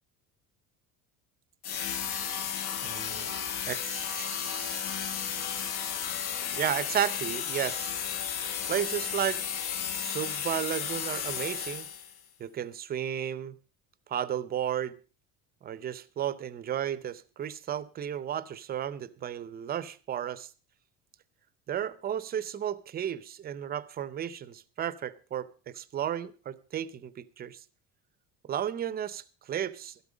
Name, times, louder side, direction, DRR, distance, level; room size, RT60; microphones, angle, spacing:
sound 1, 1.6-12.2, left 8 dB, 60° left, 1.6 m, -33 dB
voice 1, 2.8-3.3 3.7-5.9 6.5-8.0 8.7-9.4 9.9-11.9 12.4-13.6 14.1-14.9 15.6-20.5 21.7-27.6 28.4-30.0, right 10 dB, 25° right, 0.6 m, -34 dB
13.0 x 12.5 x 5.0 m
cardioid pair, 175°, 35 cm